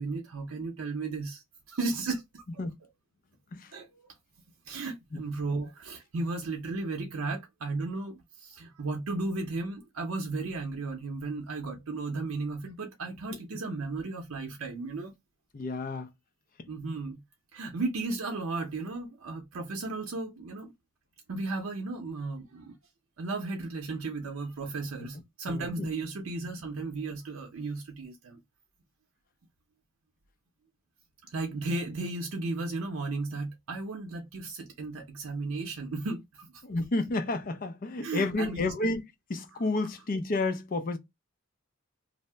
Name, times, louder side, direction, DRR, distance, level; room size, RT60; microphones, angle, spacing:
voice 1, 0.0-2.6 3.7-4.1 4.7-15.1 16.7-17.2 17.5-20.7 21.3-22.7 23.2-28.4 31.3-36.5 38.0-38.7, right 3 dB, 80° right, 0.6 m, -35 dB
voice 2, 15.5-16.1 25.5-25.9 36.6-39.0 39.3-41.0, left 2 dB, 40° left, 0.5 m, -31 dB
2.7 x 2.0 x 3.3 m
head